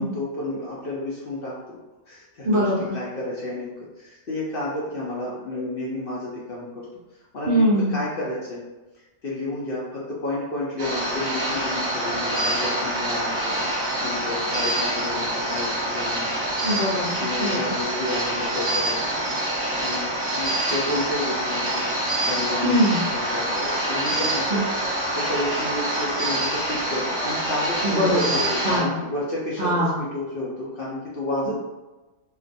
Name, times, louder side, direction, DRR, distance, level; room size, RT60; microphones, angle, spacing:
voice 1, 0.0-1.5 2.1-3.7 4.0-6.7 7.3-8.6 9.2-13.6 14.0-16.3 17.2-20.1 20.4-21.8 22.2-31.6, left 1 dB, 60° left, -6 dB, 0.6 m, -31 dB
voice 2, 2.4-2.9 7.5-8.0 16.6-17.7 22.6-23.0 24.5-24.6 27.8-28.3 28.6-29.0 29.6-30.0, equal, 60° right, -7 dB, 0.5 m, -22 dB
sound 1, 10.8-28.8, right 1 dB, 35° right, 0.8 m, -26 dB
2.4 x 2.2 x 2.5 m, 1.1 s
omnidirectional pair, 1.4 m